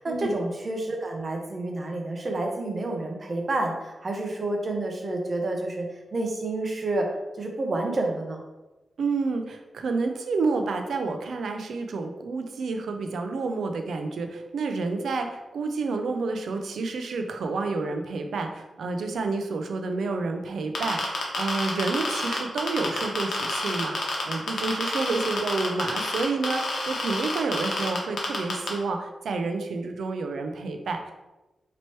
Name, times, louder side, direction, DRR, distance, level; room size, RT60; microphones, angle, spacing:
voice 1, 0.0-5.9 6.1-7.1 7.4-8.4, right 2 dB, 40° right, 1 dB, 0.7 m, -29 dB
voice 2, 9.0-24.0 24.2-31.1, right 3 dB, 90° right, 5 dB, 0.4 m, -29 dB
sound 1, 20.7-28.7, left 3 dB, 85° left, 0.9 m, -28 dB
4.4 x 3.0 x 3.0 m, 1.1 s
wide cardioid pair, 125°, 0 cm